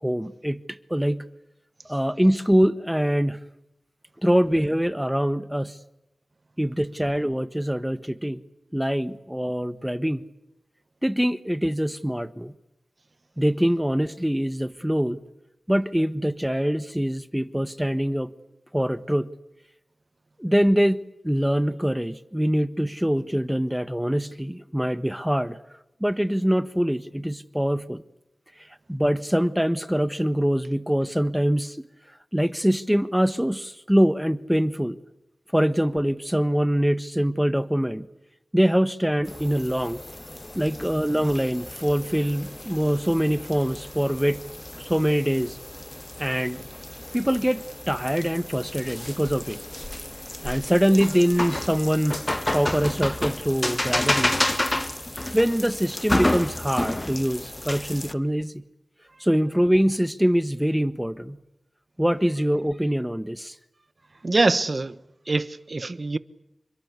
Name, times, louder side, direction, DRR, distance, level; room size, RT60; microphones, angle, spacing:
voice 1, 0.0-0.6 0.9-1.2 1.9-3.4 4.2-5.8 6.6-8.4 8.7-10.2 11.0-12.5 13.4-15.2 15.7-18.3 18.7-19.3 20.4-25.6 26.0-28.0 28.9-31.8 32.3-35.0 35.5-38.1 38.5-40.0 40.5-44.4 44.8-45.6 46.2-46.6 47.1-49.6 50.4-52.2 52.5-54.4 55.3-58.6 59.2-61.4 62.0-63.6, equal, 5° right, 1.3 m, -24 dB
sound 1, 39.2-58.1, left 1 dB, 20° left, 1.3 m, -31 dB
voice 2, 64.2-64.9 65.3-66.2, right 3 dB, 50° right, 1.2 m, -23 dB
28.0 x 24.0 x 8.4 m
wide cardioid pair, 55°, 0 cm